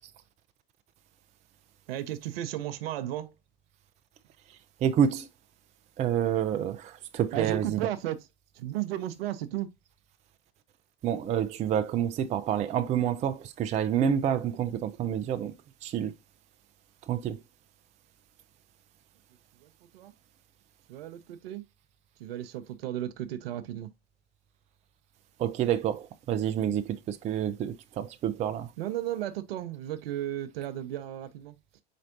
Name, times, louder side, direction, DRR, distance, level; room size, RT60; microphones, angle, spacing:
voice 1, 1.9-3.3 7.3-8.3 8.5-9.7 19.6-20.1 20.9-21.6 22.2-23.9 28.8-31.8, right 12 dB, 65° right, 0.7 m, -34 dB
voice 2, 4.8-5.3 6.0-7.8 11.0-15.5 15.8-16.1 17.1-17.4 25.4-28.7, right 9 dB, 20° right, 0.4 m, -28 dB
4.3 x 4.1 x 2.5 m
hypercardioid pair, 90°, 32 cm